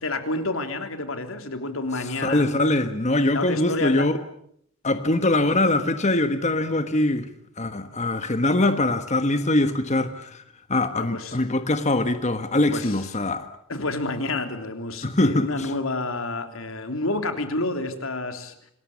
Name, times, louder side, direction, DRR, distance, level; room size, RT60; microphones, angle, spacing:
voice 1, 0.0-2.5 3.3-4.1 10.9-11.4 12.7-13.1 13.7-18.5, left 2 dB, 85° left, 3.4 m, -29 dB
voice 2, 2.2-4.2 4.8-7.3 7.6-10.4 10.7-13.5 15.0-15.7, left 2 dB, 35° left, 1.4 m, -22 dB
27.5 x 20.5 x 8.5 m
head